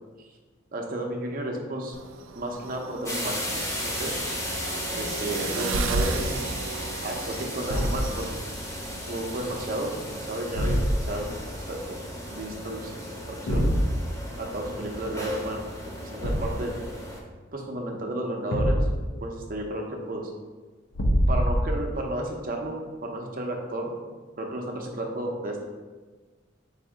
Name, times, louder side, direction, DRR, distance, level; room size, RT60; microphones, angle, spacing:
voice 1, 0.7-1.9 2.4-4.2 4.9-6.5 7.0-8.3 9.1-13.8 14.4-15.6 16.0-16.7 17.5-18.9 19.2-20.3 21.3-23.9 24.4-25.6, right 1 dB, 45° right, 1 dB, 0.7 m, -33 dB
sound 1, 1.9-11.9, right 3 dB, 90° right, 0.4 m, -35 dB
sound 2, 3.1-17.2, equal, 15° left, 0.7 m, -35 dB
Thump thud, 7.6-8.2 10.5-11.2 13.5-13.9 16.2-16.7 18.5-19.1 20.9-21.9, equal, 80° left, 0.6 m, -24 dB
4.1 x 2.6 x 4.8 m, 1.3 s
head